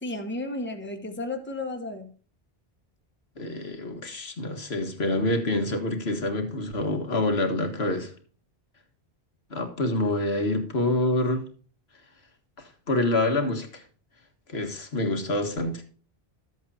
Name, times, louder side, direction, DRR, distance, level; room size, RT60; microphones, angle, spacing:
voice 1, 0.0-2.1, left 2 dB, 10° left, 1.2 m, -33 dB
voice 2, 3.4-8.1 9.5-11.5 12.6-13.8 14.5-15.8, left 2 dB, 75° left, 1.9 m, -27 dB
12.5 x 8.0 x 2.8 m
omnidirectional pair, 1.1 m